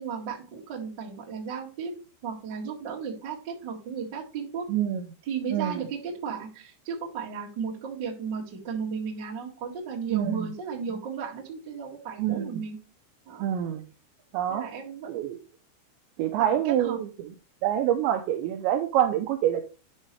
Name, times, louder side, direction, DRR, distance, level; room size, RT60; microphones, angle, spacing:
voice 1, 0.0-1.9 2.2-4.7 5.2-12.8 13.2-13.5 14.5-15.3 16.4-17.0, right 6 dB, 55° right, -2 dB, 1.2 m, -35 dB
voice 2, 4.7-5.0 5.5-5.8 10.1-10.5 12.2-12.6 13.4-13.8 14.3-14.7 15.1-15.4 16.2-17.1 17.6-19.6, right 11 dB, 85° right, 6 dB, 2.6 m, -26 dB
9.9 x 5.7 x 3.2 m, 0.35 s
omnidirectional pair, 5.9 m